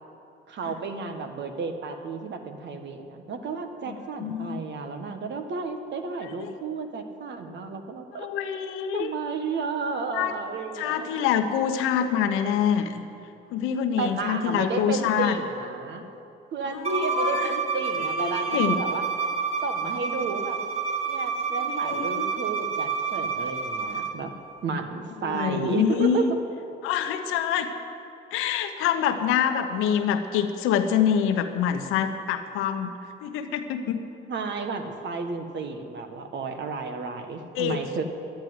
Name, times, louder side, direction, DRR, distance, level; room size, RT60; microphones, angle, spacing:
voice 1, 0.5-8.3 8.9-11.1 14.0-16.0 16.5-19.0 19.6-20.6 21.0-24.3 24.6-26.3 34.3-38.0, right 4 dB, 60° right, 6 dB, 1.5 m, -32 dB
voice 2, 3.9-4.6 6.4-6.5 8.2-9.2 10.1-10.3 10.7-13.0 13.5-15.4 16.7-17.5 18.0-18.8 21.7-22.3 25.2-26.3 26.8-27.7 28.3-32.9 33.2-34.0 37.5-37.8, left 8 dB, 85° left, 7 dB, 1.1 m, -26 dB
Bowed string instrument, 16.8-24.1, right 6 dB, 30° right, 1.6 m, -29 dB
11.5 x 10.5 x 9.5 m, 2.7 s
supercardioid pair, 75°, 21 cm